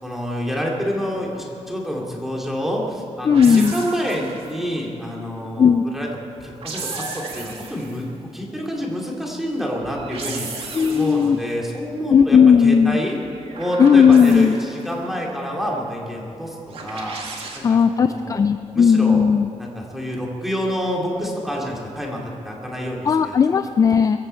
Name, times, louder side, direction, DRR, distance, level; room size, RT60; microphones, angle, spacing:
voice 1, 0.0-6.1 6.4-8.0 8.3-13.2 13.6-17.4 17.7-18.4 18.7-19.2 19.6-23.3, equal, 5° right, -2 dB, 2.4 m, -28 dB
voice 2, 3.2-3.7 5.6-5.8 10.7-11.4 12.1-13.0 13.8-14.6 17.6-19.5 23.0-24.2, left 6 dB, 30° left, 10 dB, 0.3 m, -15 dB
sound 1, 3.3-4.6 6.4-8.0 9.8-11.4 13.2-14.9 16.7-17.6, right 3 dB, 55° right, 2.1 m, -34 dB
22.5 x 14.5 x 4.4 m, 2.8 s
wide cardioid pair, 175°, 12 cm